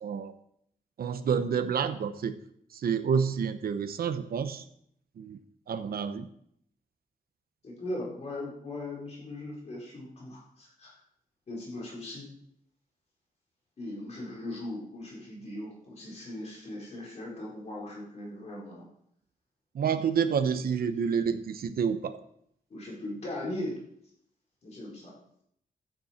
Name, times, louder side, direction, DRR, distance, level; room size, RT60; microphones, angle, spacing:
voice 1, 0.0-0.3 1.0-2.3 2.7-4.6 5.2-5.4 5.7-6.3 19.7-22.2, right 6 dB, 85° right, 9 dB, 0.9 m, -29 dB
voice 2, 7.6-11.0 11.5-12.2 13.8-18.8 19.8-20.1 22.7-23.8 24.6-25.1, left 1 dB, 45° left, -4 dB, 4.2 m, -39 dB
12.5 x 9.2 x 4.4 m, 0.70 s
wide cardioid pair, 170°, 15 cm